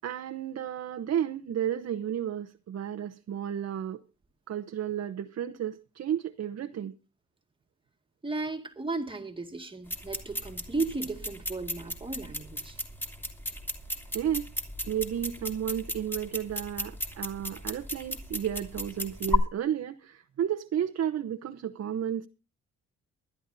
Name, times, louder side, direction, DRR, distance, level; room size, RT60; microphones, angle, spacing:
voice 1, 0.0-4.0 4.5-6.9 14.1-14.5 14.9-22.3, right 9 dB, 55° right, 1.0 m, -32 dB
voice 2, 8.2-12.8, right 3 dB, 15° right, 2.1 m, -35 dB
sound 1, 9.9-19.4, left 1 dB, 5° left, 3.1 m, -35 dB
23.0 x 11.5 x 2.7 m
cardioid pair, 90°, 30 cm